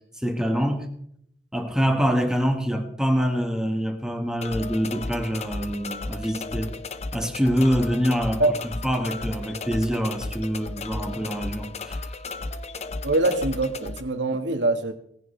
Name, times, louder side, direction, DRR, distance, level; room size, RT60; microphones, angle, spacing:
voice 1, 0.2-0.9 1.5-6.7 7.1-12.0, equal, 5° right, 1.6 m, -25 dB
sound 1, 4.4-14.0, left 3 dB, 35° left, 0.8 m, -34 dB
voice 2, 13.0-14.9, right 2 dB, 85° right, 1.7 m, -23 dB
18.5 x 15.5 x 3.3 m
head